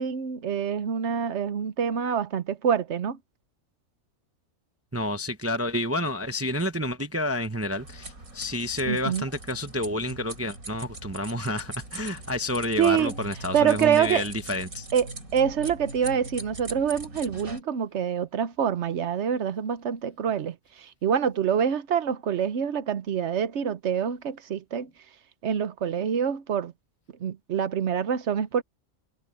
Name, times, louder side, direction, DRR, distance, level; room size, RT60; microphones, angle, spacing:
voice 1, 0.0-3.2 8.8-9.2 12.8-13.1 13.5-14.2 14.9-15.1 15.3-24.9 25.4-26.7 27.2-28.6, right 8 dB, 60° right, 1.2 m, -26 dB
voice 2, 4.9-14.9, left 1 dB, 15° right, 0.6 m, -29 dB
sound 1, 7.7-17.6, right 2 dB, 85° right, 5.6 m, -41 dB
omnidirectional pair, 1.4 m